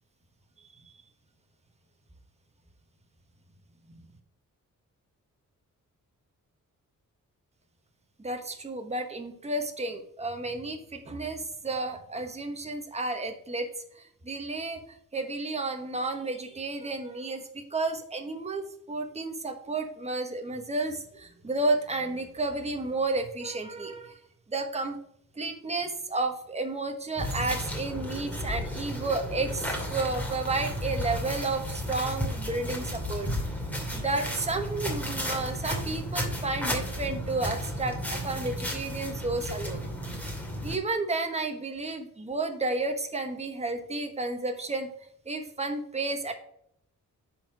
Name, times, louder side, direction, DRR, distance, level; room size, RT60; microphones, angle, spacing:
voice 1, 8.2-13.7 13.9-14.8 15.1-24.2 24.5-25.0 25.4-33.3 33.9-39.8 40.6-44.9 45.3-46.3, right 2 dB, 20° right, 5 dB, 1.2 m, -32 dB
sound 1, 27.2-40.8, equal, 5° left, 2.5 m, -33 dB
10.0 x 4.6 x 4.7 m, 0.69 s
wide cardioid pair, 110°, 33 cm